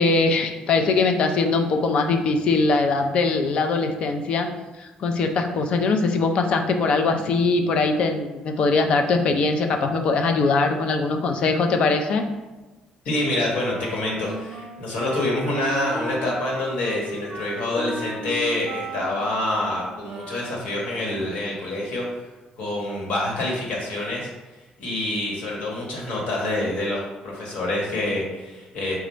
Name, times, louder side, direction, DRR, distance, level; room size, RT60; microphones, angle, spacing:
voice 1, 0.0-4.5 4.8-12.2, left 3 dB, 45° left, 5 dB, 0.4 m, -21 dB
voice 2, 13.0-22.0 22.6-24.3 24.8-29.0, left 1 dB, 70° left, -3 dB, 1.4 m, -26 dB
Wind instrument woodwind instrument, 13.5-20.6, right 3 dB, 75° right, 0.7 m, -36 dB
5.0 x 2.3 x 4.2 m, 1.1 s
cardioid pair, 180°, 2 cm